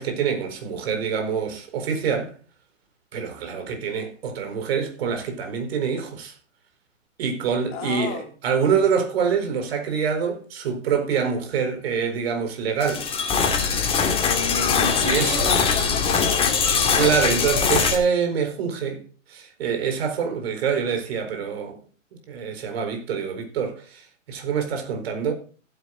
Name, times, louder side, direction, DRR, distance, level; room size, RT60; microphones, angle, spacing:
voice 1, 0.0-2.3 3.1-6.3 7.2-13.1 15.0-15.5 17.0-19.0 19.3-21.8 22.3-25.3, right 6 dB, 50° right, 4.5 m, -25 dB
voice 2, 7.7-8.3 14.0-16.6, left 7 dB, 35° left, 3.7 m, -32 dB
sound 1, 12.8-18.0, left 5 dB, 15° left, 2.5 m, -22 dB
15.5 x 9.4 x 3.9 m
hypercardioid pair, 130°, 38 cm